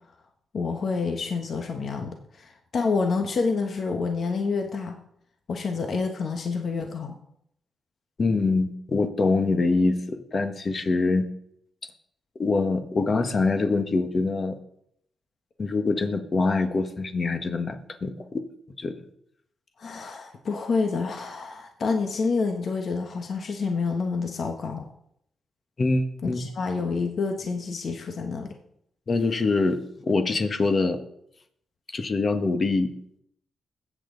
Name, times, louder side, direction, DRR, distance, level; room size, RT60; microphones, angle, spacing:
voice 1, 0.5-5.0 5.5-7.1 19.8-24.9 26.2-28.5, left 4 dB, 55° left, 4 dB, 1.3 m, -28 dB
voice 2, 8.2-11.3 12.4-14.5 15.6-18.4 18.8-18.9 25.8-26.5 29.1-31.0 31.9-32.9, left 3 dB, 40° left, 8 dB, 1.5 m, -24 dB
20.5 x 8.7 x 4.0 m, 0.73 s
cardioid pair, 100°, 0 cm